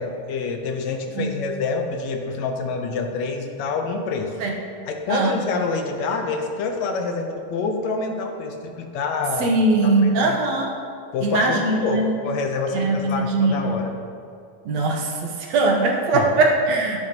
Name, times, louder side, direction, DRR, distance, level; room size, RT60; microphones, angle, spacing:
voice 1, 0.0-4.3 4.9-9.6 9.8-10.4 11.1-13.9 16.1-16.3, left 4 dB, 75° left, 4 dB, 1.9 m, -27 dB
voice 2, 9.4-10.7 11.2-12.2 12.7-13.8 14.7-17.0, right 2 dB, 70° right, 0 dB, 2.2 m, -21 dB
12.5 x 10.5 x 2.9 m, 2.4 s
omnidirectional pair, 3.3 m